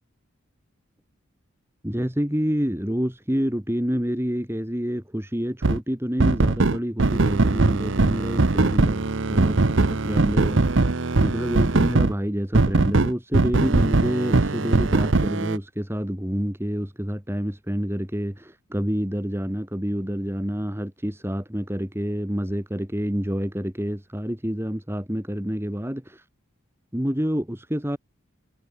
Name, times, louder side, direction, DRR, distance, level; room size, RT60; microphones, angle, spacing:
voice 1, 1.8-10.6 11.2-26.3 26.9-28.0, equal, 10° right, 2.1 m, -28 dB
sound 1, 5.6-5.8 6.2-12.1 12.5-15.6, right 2 dB, 60° right, 0.9 m, -20 dB
head